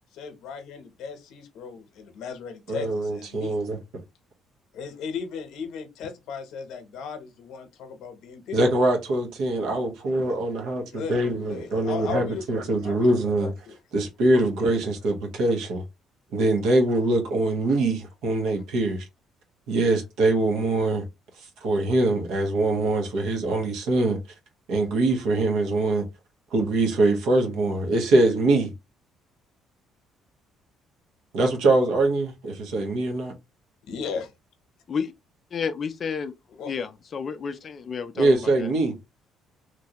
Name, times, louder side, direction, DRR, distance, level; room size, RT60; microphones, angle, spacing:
voice 1, 0.1-3.6 4.7-8.6 10.9-11.2 11.5-13.7 33.9-34.3 36.6-36.7, left 5 dB, 75° left, 0.8 m, -36 dB
voice 2, 2.7-3.8 8.5-13.5 13.9-15.8 16.3-19.0 19.7-21.0 21.4-24.2 24.7-26.0 26.5-28.7 31.3-33.3 38.1-39.0, right 2 dB, 80° right, 1.2 m, -23 dB
voice 3, 35.5-38.7, left 6 dB, 35° left, 0.4 m, -31 dB
3.2 x 2.6 x 2.9 m
cardioid pair, 135°, 0 cm